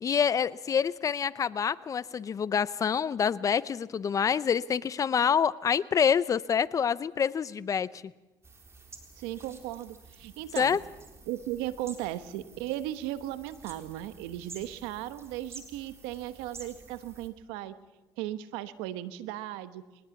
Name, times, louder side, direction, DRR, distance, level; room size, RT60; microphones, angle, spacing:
voice 1, 0.0-7.9 10.6-10.8, left 7 dB, 40° left, 18 dB, 0.7 m, -27 dB
sound 1, 8.4-17.3, right 4 dB, 30° right, 3.9 m, -50 dB
voice 2, 9.2-10.8 11.3-17.7 18.2-19.8, right 13 dB, 90° right, 13 dB, 1.1 m, -36 dB
22.0 x 19.5 x 7.2 m, 1.1 s
supercardioid pair, 85°, 9 cm